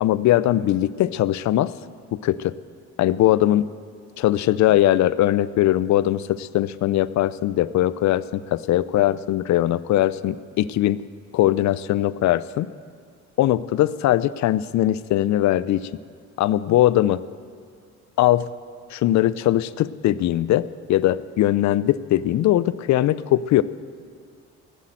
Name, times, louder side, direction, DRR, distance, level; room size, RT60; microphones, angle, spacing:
voice 1, 0.0-1.7 2.1-2.5 3.0-3.7 4.2-11.0 11.3-12.7 13.4-15.9 16.4-17.2 18.2-18.5 18.9-23.6, left 13 dB, 65° left, 17 dB, 0.5 m, -20 dB
15.0 x 7.6 x 9.1 m, 2.1 s
cardioid pair, 90°, 30 cm